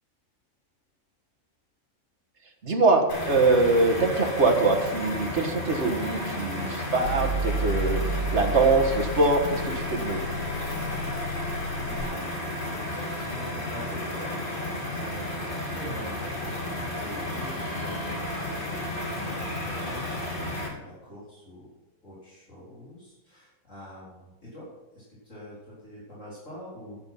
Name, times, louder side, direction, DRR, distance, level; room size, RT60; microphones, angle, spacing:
voice 1, 2.6-10.2, right 3 dB, 55° right, 3 dB, 1.9 m, -23 dB
sound 1, 3.1-20.7, left 1 dB, 35° left, 3.0 m, -33 dB
sound 2, 7.0-12.0, right 2 dB, 70° right, 1.3 m, -32 dB
voice 2, 11.7-21.7 22.0-27.0, left 1 dB, 60° left, -7 dB, 4.2 m, -44 dB
10.5 x 9.9 x 5.6 m, 1.1 s
omnidirectional pair, 1.5 m